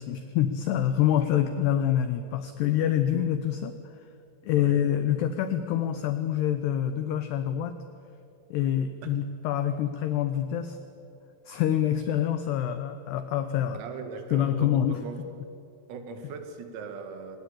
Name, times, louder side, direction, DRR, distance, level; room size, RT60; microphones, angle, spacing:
voice 1, 0.0-3.7 4.4-7.8 8.5-10.8 11.5-13.8 14.3-15.0, left 10 dB, 85° left, 10 dB, 2.3 m, -26 dB
voice 2, 13.7-15.2 15.9-17.4, right 5 dB, 85° right, 6 dB, 4.7 m, -39 dB
25.0 x 19.5 x 8.7 m, 2.8 s
omnidirectional pair, 6.0 m